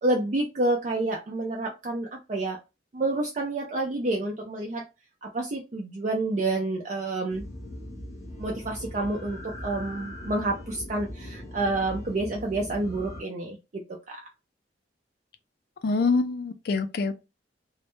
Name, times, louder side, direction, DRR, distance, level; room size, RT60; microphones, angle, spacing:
voice 1, 0.0-2.6 2.9-4.9 5.2-7.4 8.4-14.2, right 2 dB, 45° right, 0.4 m, -29 dB
sound 1, 7.3-13.2, left 1 dB, 15° left, 0.7 m, -40 dB
voice 2, 15.8-17.1, left 4 dB, 60° left, 0.4 m, -25 dB
2.1 x 2.0 x 2.9 m
head